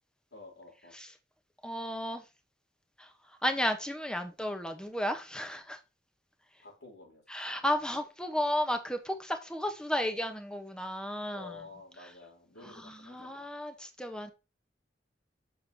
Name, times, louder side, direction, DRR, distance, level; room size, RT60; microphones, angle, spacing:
voice 1, 0.3-0.9 6.6-7.7 11.3-13.5, left 3 dB, 90° left, 4.5 m, -51 dB
voice 2, 1.6-2.2 3.0-3.1 3.4-5.8 7.3-11.5 12.8-14.3, equal, 5° left, 1.3 m, -33 dB
7.8 x 6.9 x 3.0 m
head